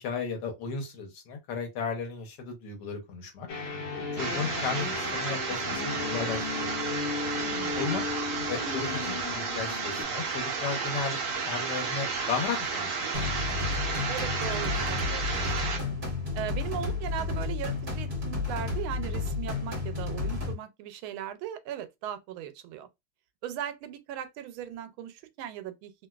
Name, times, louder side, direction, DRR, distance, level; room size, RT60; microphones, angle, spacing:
voice 1, 0.0-3.5 4.1-6.7 7.8-8.0 8.5-11.2 11.4-13.2, left 5 dB, 65° left, 1.4 m, -34 dB
sound 1, 3.5-10.0, left 4 dB, 85° left, 1.6 m, -35 dB
sound 2, 4.2-15.8, right 5 dB, 60° right, 0.8 m, -32 dB
voice 2, 7.4-8.0 14.1-16.0 16.3-22.9 23.4-25.9, right 10 dB, 85° right, 1.4 m, -38 dB
sound 3, 13.1-20.5, left 4 dB, 30° right, 1.1 m, -32 dB
3.4 x 2.5 x 2.3 m
omnidirectional pair, 2.2 m